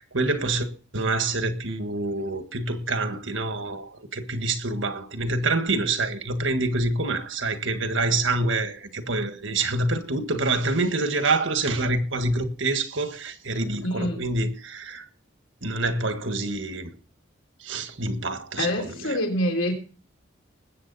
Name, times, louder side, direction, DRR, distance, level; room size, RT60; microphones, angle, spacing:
voice 1, 0.0-15.1 15.6-16.9 17.6-19.2, right 2 dB, 75° right, 1.6 m, -26 dB
voice 2, 13.8-14.2 18.6-19.7, left 1 dB, 80° left, 3.4 m, -26 dB
20.5 x 8.7 x 4.1 m
head